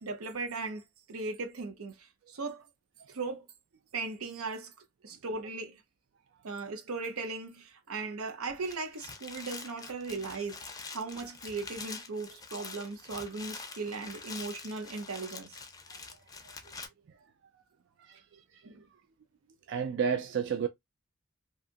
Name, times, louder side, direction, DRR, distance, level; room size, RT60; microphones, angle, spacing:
voice 1, 0.0-2.6 3.1-3.4 3.9-4.7 5.0-5.8 6.4-15.6 18.6-18.8, right 3 dB, 90° right, 0.7 m, -38 dB
sound 1, 8.5-16.9, left 4 dB, 15° left, 0.5 m, -45 dB
voice 2, 19.7-20.7, right 7 dB, 55° right, 0.3 m, -30 dB
2.8 x 2.4 x 2.5 m
head